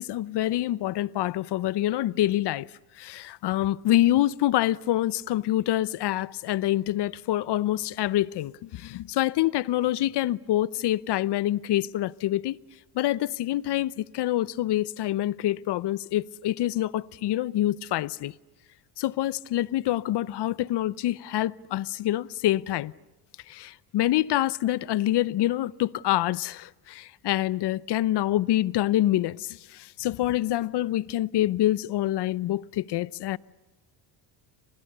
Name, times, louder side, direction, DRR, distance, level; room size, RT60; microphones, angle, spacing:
voice 1, 0.0-2.7 3.0-12.6 12.9-18.3 19.0-22.9 23.5-33.4, left 14 dB, 60° left, 0.8 m, -26 dB
30.0 x 26.0 x 6.7 m
supercardioid pair, 85°, 47 cm